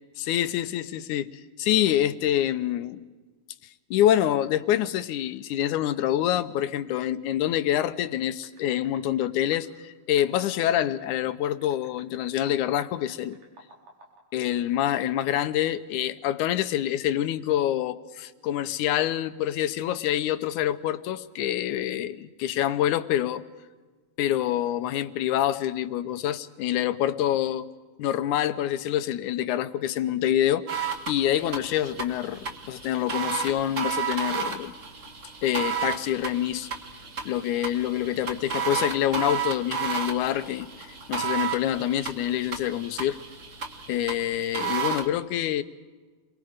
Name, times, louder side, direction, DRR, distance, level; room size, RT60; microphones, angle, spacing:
voice 1, 0.2-1.3 1.6-3.0 3.9-13.4 14.3-23.4 24.2-27.7 28.0-34.7 35.4-36.7 37.3-43.2 43.9-45.6, left 11 dB, 90° left, 2.3 m, -26 dB
sound 1, 8.4-9.3 9.5-9.6 10.2-12.6 12.8-14.2, right 2 dB, 80° right, 5.5 m, -53 dB
sound 2, 30.7-45.1, right 6 dB, 40° right, 1.2 m, -32 dB
29.0 x 23.0 x 5.0 m
omnidirectional pair, 3.4 m